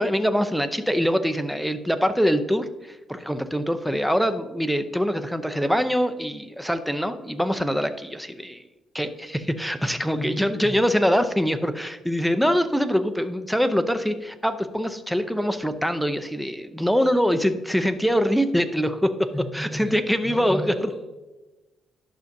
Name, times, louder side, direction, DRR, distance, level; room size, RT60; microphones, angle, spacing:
voice 1, 0.0-8.6 8.9-19.3 19.5-20.6, equal, ahead, 9 dB, 0.6 m, -24 dB
voice 2, 10.1-10.8 19.3-20.9, equal, 15° left, -1 dB, 1.1 m, -33 dB
11.0 x 6.4 x 2.7 m, 1.1 s
cardioid pair, 90°, 0 cm